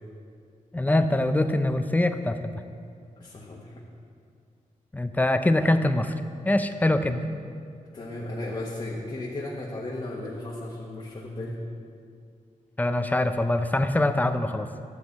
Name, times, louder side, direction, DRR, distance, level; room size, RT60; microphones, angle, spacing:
voice 1, 0.7-2.6 4.9-6.1 6.4-7.3 12.8-14.7, left 1 dB, 10° left, 9 dB, 0.4 m, -23 dB
voice 2, 3.2-3.8 7.9-11.5, left 2 dB, 35° left, -4 dB, 1.2 m, -35 dB
12.5 x 8.1 x 4.2 m, 2.3 s
wide cardioid pair, 140°, 14 cm